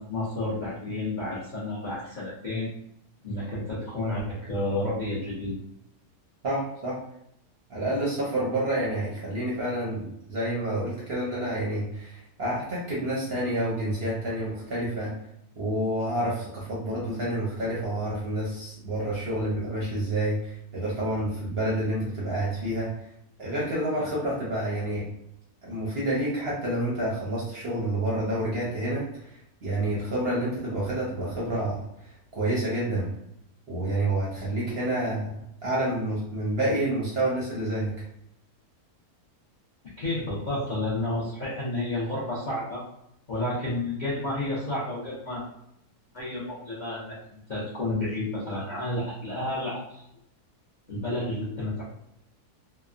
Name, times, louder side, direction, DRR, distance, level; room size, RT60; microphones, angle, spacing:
voice 1, 0.0-2.7 3.2-5.6 40.0-42.8 43.3-45.4 46.1-50.0 50.9-51.9, left 1 dB, 50° left, -8 dB, 0.5 m, -31 dB
voice 2, 6.4-7.0 7.7-15.1 15.6-22.9 23.4-25.0 25.6-29.0 29.6-31.8 32.3-33.1 33.7-35.3 35.6-37.9, right 1 dB, 50° right, -6 dB, 0.8 m, -28 dB
3.1 x 2.0 x 2.4 m, 0.79 s
omnidirectional pair, 1.7 m